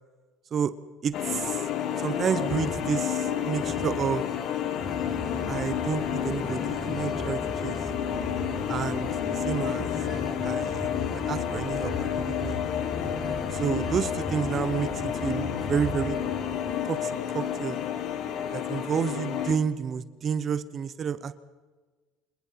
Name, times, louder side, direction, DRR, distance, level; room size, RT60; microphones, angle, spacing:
voice 1, 1.0-1.7 2.0-4.2 5.5-7.8 8.7-9.9 10.4-10.9 11.1-12.6 13.5-16.2 16.8-17.8 18.5-21.3, right 7 dB, 35° right, 14 dB, 1.0 m, -30 dB
sound 1, 1.1-19.6, left 9 dB, 55° left, 2.1 m, -30 dB
sound 2, 2.4-2.9 3.5-4.2 4.8-16.8, left 1 dB, 20° left, 6.2 m, -37 dB
27.0 x 21.0 x 5.8 m, 1.3 s
supercardioid pair, 115°, 0 cm